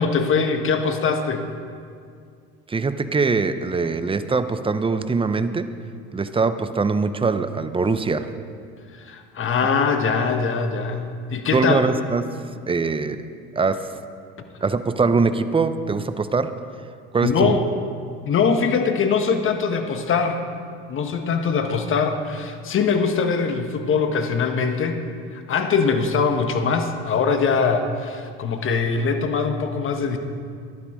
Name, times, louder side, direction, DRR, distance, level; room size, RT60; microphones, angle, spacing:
voice 1, 0.0-1.5 8.9-11.9 17.2-17.6 18.3-20.4 20.9-25.0 25.3-30.2, left 5 dB, 40° left, 6 dB, 1.5 m, -22 dB
voice 2, 2.7-5.7 6.1-8.3 11.5-12.3 12.7-13.2 13.5-13.8 14.6-16.5 17.1-17.6, right 4 dB, 15° right, 11 dB, 0.8 m, -22 dB
14.5 x 11.5 x 5.0 m, 2.2 s
hypercardioid pair, 75°, 32 cm